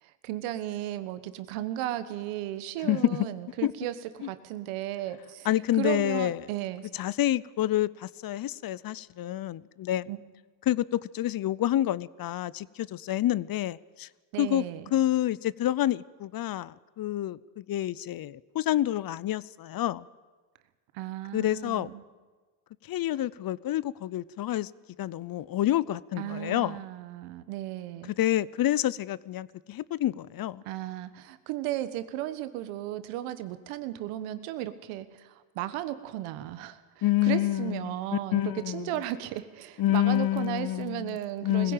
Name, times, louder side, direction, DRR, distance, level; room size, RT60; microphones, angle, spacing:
voice 1, 0.0-5.5 5.7-6.9 10.1-10.2 14.3-14.8 20.9-22.0 26.2-28.1 30.6-41.7, right 13 dB, 80° right, 1.5 m, -35 dB
voice 2, 2.8-3.3 3.6-3.7 4.2-4.3 5.4-6.4 6.9-10.1 10.7-14.1 14.4-14.6 14.9-20.1 21.3-21.9 22.8-24.7 25.0-26.8 28.2-30.6 37.0-38.9 39.8-41.2 41.4-41.7, left 13 dB, 45° left, 0.6 m, -28 dB
20.0 x 16.0 x 9.0 m
supercardioid pair, 75°, 50 cm